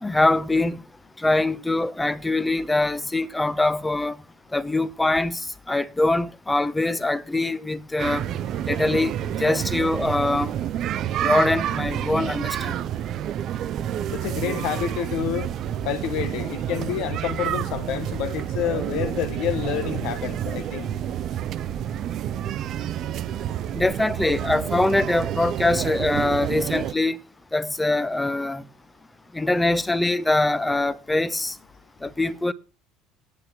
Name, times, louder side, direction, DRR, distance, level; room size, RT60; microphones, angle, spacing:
voice 1, 0.0-0.8 1.2-4.2 4.5-8.3 8.6-9.1 9.4-10.5 11.2-12.8 23.7-27.2 27.5-28.6 29.3-31.6 32.0-32.5, left 2 dB, 10° left, 0.8 m, -23 dB
sound 1, 8.0-26.9, right 11 dB, 50° right, 0.6 m, -29 dB
voice 2, 14.1-15.5 15.8-20.9, left 9 dB, 60° left, 1.3 m, -28 dB
8.9 x 6.6 x 8.4 m
figure-of-eight pair, 60°, 0 cm